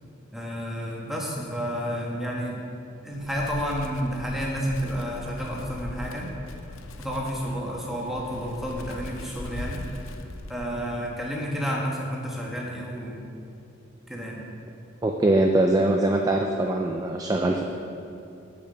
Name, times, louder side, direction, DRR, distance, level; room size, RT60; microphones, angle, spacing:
voice 1, 0.3-2.6 3.0-6.3 7.0-9.8 10.5-13.2 14.1-14.4, equal, ahead, -3 dB, 1.2 m, -30 dB
Wind, 3.1-10.9, left 2 dB, 75° left, 0.6 m, -40 dB
voice 2, 15.0-17.6, right 1 dB, 20° right, 2 dB, 0.4 m, -22 dB
7.8 x 7.1 x 5.3 m, 2.7 s
head